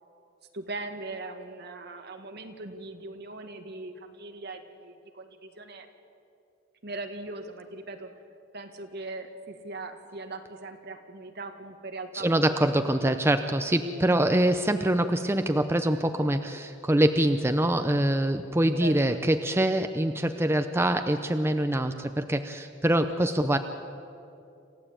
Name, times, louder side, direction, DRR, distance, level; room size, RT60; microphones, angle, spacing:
voice 1, 0.5-5.9 6.8-8.1 8.5-12.7 13.0-13.2 18.8-19.2, right 2 dB, 55° right, 5 dB, 1.9 m, -40 dB
voice 2, 12.1-23.6, right 1 dB, 15° right, 8 dB, 0.7 m, -24 dB
28.0 x 15.0 x 8.7 m, 2.6 s
head